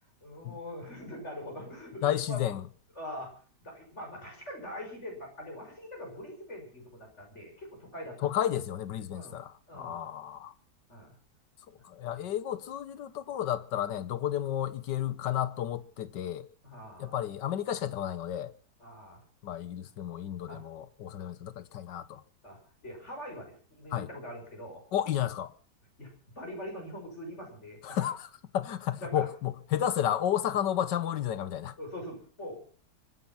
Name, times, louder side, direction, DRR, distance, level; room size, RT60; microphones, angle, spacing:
voice 1, 0.2-2.4 2.9-3.3 3.6-8.2 9.1-9.4 9.7-10.1 10.9-11.1 11.7-11.8 12.1-12.3 16.6-17.2 18.8-19.2 20.5-20.6 22.4-24.8 26.0-28.1 29.0-29.3 31.8-32.6, equal, 40° left, 6.6 m, -43 dB
voice 2, 2.0-2.6 8.2-10.5 11.8-16.5 17.0-18.5 19.4-22.2 23.9-24.1 24.9-25.5 27.8-28.3 28.5-31.8, left 11 dB, 85° left, 1.7 m, -32 dB
24.0 x 10.0 x 6.0 m
omnidirectional pair, 1.8 m